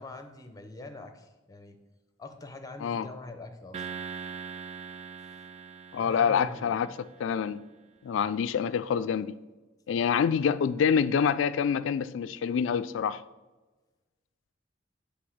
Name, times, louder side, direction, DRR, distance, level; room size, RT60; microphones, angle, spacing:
voice 1, 0.0-1.8 2.2-3.9 5.2-5.3 6.0-6.8, left 2 dB, 20° left, 0.6 m, -44 dB
sound 1, 3.7-7.2, right 6 dB, 35° right, 0.3 m, -41 dB
voice 2, 5.9-6.9 7.2-7.6 8.0-9.4 9.9-13.2, left 7 dB, 80° left, 0.3 m, -26 dB
7.7 x 3.4 x 6.3 m
head